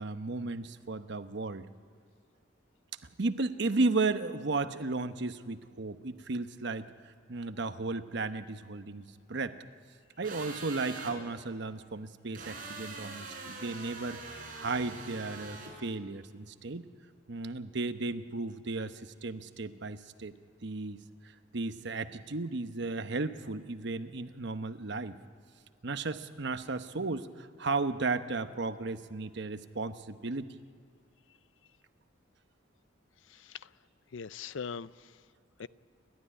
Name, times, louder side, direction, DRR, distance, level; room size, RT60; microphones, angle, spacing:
voice 1, 0.0-1.7 3.2-9.6 10.2-16.9 17.3-20.3 20.6-21.0 21.5-25.2 25.8-30.6, right 3 dB, 65° right, 10 dB, 0.9 m, -34 dB
sound 1, 10.2-11.1 12.3-15.7, right 3 dB, 45° right, 5.1 m, -43 dB
voice 2, 33.3-33.7 34.1-35.2 35.6-35.7, left 6 dB, 80° left, 17 dB, 0.5 m, -41 dB
29.5 x 12.5 x 9.9 m, 2.1 s
head